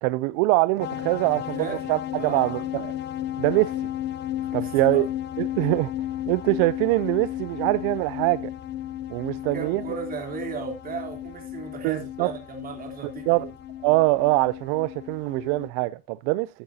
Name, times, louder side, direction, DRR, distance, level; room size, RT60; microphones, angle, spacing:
voice 1, 0.0-2.9 3.4-3.7 4.5-5.1 5.4-5.9 6.3-8.5 9.1-9.8 11.8-12.3 13.3-13.5 13.8-16.5, right 20 dB, 70° right, 0.5 m, -23 dB
sound 1, 0.8-15.7, left 12 dB, 35° left, 0.7 m, -34 dB
voice 2, 1.6-2.6 4.5-5.0 5.6-5.7 9.3-13.5, right 5 dB, 25° right, 3.3 m, -36 dB
14.0 x 8.8 x 2.7 m
cardioid pair, 165°, 33 cm